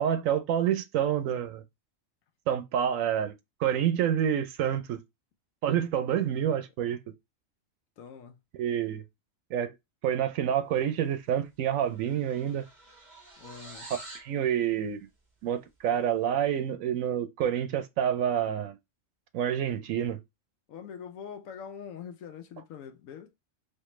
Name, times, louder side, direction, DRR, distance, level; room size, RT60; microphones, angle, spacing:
voice 1, 0.0-1.6 2.5-3.3 3.6-5.0 5.6-7.0 8.6-9.0 9.5-9.7 10.0-12.7 14.1-15.0 15.4-18.8 19.3-20.2, right 9 dB, 90° right, 1.0 m, -28 dB
voice 2, 8.0-8.4 13.4-13.9 20.7-23.4, left 7 dB, 90° left, 1.0 m, -43 dB
sound 1, 11.2-11.4 11.6-14.3, right 2 dB, 35° right, 1.9 m, -48 dB
4.2 x 2.6 x 3.1 m
omnidirectional pair, 1.3 m